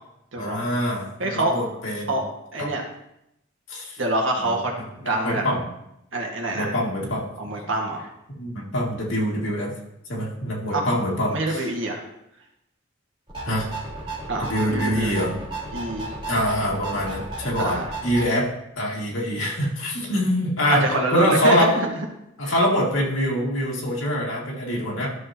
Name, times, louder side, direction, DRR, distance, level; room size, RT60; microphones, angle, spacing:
voice 1, 0.4-2.2 2.6-2.7 3.7-4.0 4.4-4.6 5.0-5.6 6.5-7.2 8.3-9.7 10.1-11.6 13.5-13.7 14.4-15.3 16.3-18.5 18.8-20.8 21.1-21.7 22.4-25.1, equal, 85° left, -3 dB, 2.3 m, -24 dB
voice 2, 1.2-1.6 2.1-2.8 4.0-5.4 6.1-6.7 7.4-8.1 10.7-10.9 11.3-12.0 14.3-15.2 15.7-16.2 17.6-17.9 20.7-21.9 22.4-22.5, right 2 dB, 80° right, 0 dB, 1.8 m, -26 dB
sound 1, 13.3-18.2, right 2 dB, 25° right, 3.0 m, -33 dB
13.0 x 6.5 x 2.9 m, 0.83 s
head